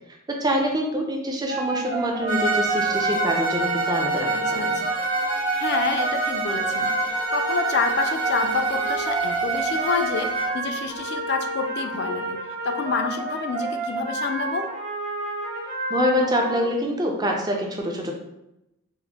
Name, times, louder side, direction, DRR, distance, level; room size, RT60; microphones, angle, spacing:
voice 1, 0.3-4.7 15.9-18.1, equal, 20° right, 1 dB, 0.4 m, -25 dB
sound 1, 1.5-16.6, right 2 dB, 40° right, 0.9 m, -30 dB
Bowed string instrument, 2.3-10.6, right 3 dB, 65° right, 1.0 m, -26 dB
voice 2, 4.3-4.8 5.6-14.7, left 5 dB, 50° left, 7 dB, 0.3 m, -28 dB
4.1 x 2.1 x 2.8 m, 0.88 s
head